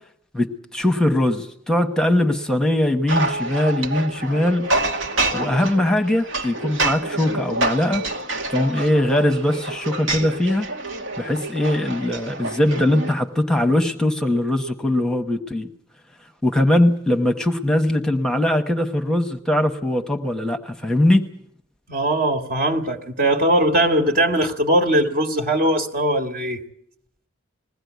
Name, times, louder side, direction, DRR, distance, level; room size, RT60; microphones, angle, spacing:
voice 1, 0.7-4.6 5.3-8.0 8.5-10.7 11.2-15.7 16.4-21.2, left 1 dB, 5° left, 5 dB, 1.0 m, -21 dB
sound 1, 3.1-13.1, right 2 dB, 85° right, 2.2 m, -27 dB
voice 2, 21.9-26.6, right 1 dB, 50° right, 6 dB, 2.0 m, -20 dB
21.0 x 16.0 x 9.4 m, 0.70 s
head